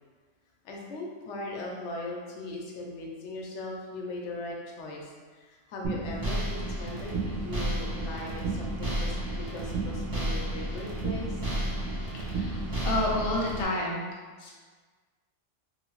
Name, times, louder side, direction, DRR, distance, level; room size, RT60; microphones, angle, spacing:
voice 1, 0.6-11.4, left 2 dB, 75° left, -1 dB, 0.9 m, -39 dB
sound 1, 5.8-13.6, right 1 dB, 35° right, 0.4 m, -32 dB
voice 2, 12.1-14.1 14.4-14.5, left 1 dB, 45° left, -3 dB, 0.4 m, -30 dB
2.9 x 2.7 x 2.9 m, 1.5 s
omnidirectional pair, 1.3 m